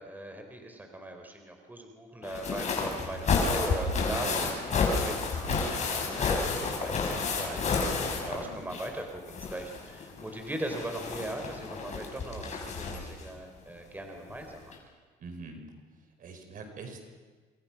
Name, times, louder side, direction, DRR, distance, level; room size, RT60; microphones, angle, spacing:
voice 1, 0.0-14.7, right 1 dB, 10° right, 4 dB, 4.3 m, -39 dB
sound 1, 2.2-9.0 9.3-13.2 14.3-14.4 14.7-14.8, left 4 dB, 45° left, 6.3 m, -31 dB
voice 2, 4.2-4.5 8.3-8.6 15.2-15.6 16.2-17.0, right 4 dB, 55° right, 5 dB, 4.9 m, -42 dB
27.5 x 27.5 x 6.1 m, 1.4 s
cardioid pair, 110°, 17 cm